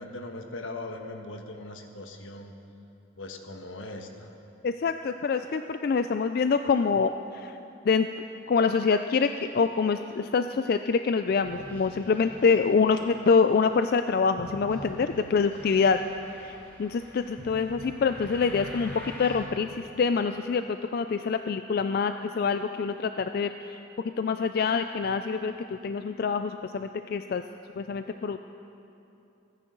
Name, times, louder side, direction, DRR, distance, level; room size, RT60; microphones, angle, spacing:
voice 1, 0.0-2.5 3.2-4.3, left 2 dB, 80° left, 4 dB, 1.3 m, -40 dB
voice 2, 4.6-7.6 7.9-8.1 8.5-16.0 16.4-23.8 24.2-27.4 27.8-28.4, left 5 dB, 50° left, 8 dB, 0.3 m, -26 dB
sound 1, 11.4-19.4, equal, 10° left, 2.6 m, -45 dB
27.0 x 9.9 x 3.9 m, 2.8 s
head